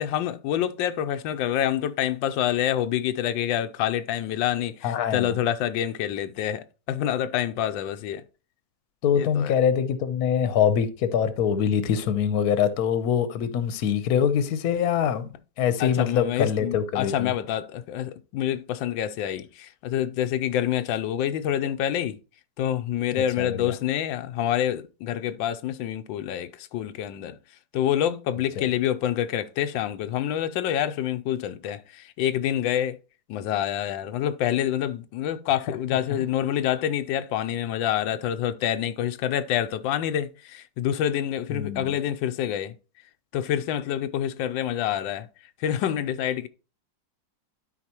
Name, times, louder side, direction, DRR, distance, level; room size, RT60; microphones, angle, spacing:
voice 1, 0.0-8.2 9.1-9.5 15.8-22.2 22.6-27.4 27.7-33.0 33.3-42.7 43.3-45.3 45.6-46.5, left 11 dB, 90° left, 1.3 m, -27 dB
voice 2, 4.8-5.4 9.0-15.3 15.6-17.3 23.1-23.7 28.6-28.7 36.1-36.2 41.5-41.9, left 8 dB, 60° left, 1.2 m, -24 dB
12.0 x 4.7 x 2.9 m
omnidirectional pair, 2.0 m